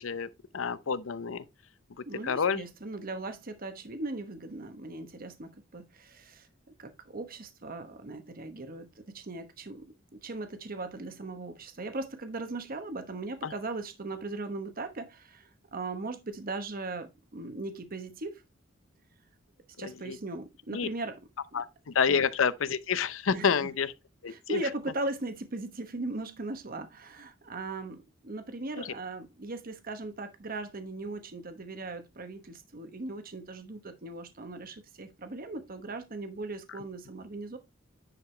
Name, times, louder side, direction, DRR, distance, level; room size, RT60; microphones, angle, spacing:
voice 1, 0.0-1.4 2.0-2.6 13.4-13.5 19.8-20.2 20.7-20.9 21.5-23.9 24.2-24.6 28.8-28.9, left 6 dB, 80° left, 0.6 m, -29 dB
voice 2, 2.1-6.5 6.8-9.9 10.2-18.4 19.8-21.2 21.5-21.6 22.1-22.2 23.3-23.7 24.3-37.6, right 2 dB, 45° right, 1.0 m, -38 dB
10.0 x 4.8 x 3.3 m
head